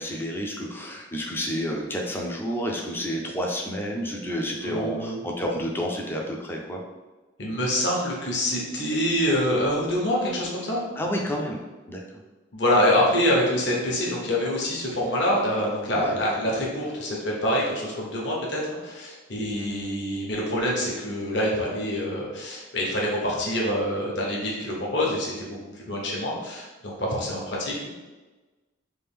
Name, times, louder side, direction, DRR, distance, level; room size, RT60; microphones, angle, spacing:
voice 1, 0.0-6.8 11.0-11.6 11.9-12.0 15.9-16.2, equal, 10° left, 0 dB, 0.4 m, -30 dB
voice 2, 4.6-5.2 7.4-10.8 12.5-27.9, equal, 60° left, -3 dB, 0.9 m, -26 dB
3.3 x 2.5 x 3.5 m, 1.2 s
head